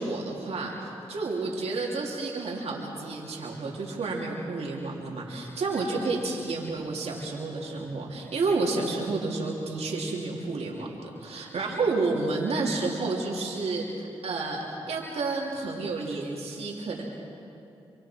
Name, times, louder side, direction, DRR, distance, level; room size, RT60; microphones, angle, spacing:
voice 1, 0.0-17.0, right 3 dB, 80° right, -2 dB, 3.1 m, -30 dB
26.0 x 25.0 x 4.6 m, 2.6 s
cardioid pair, 50°, 11 cm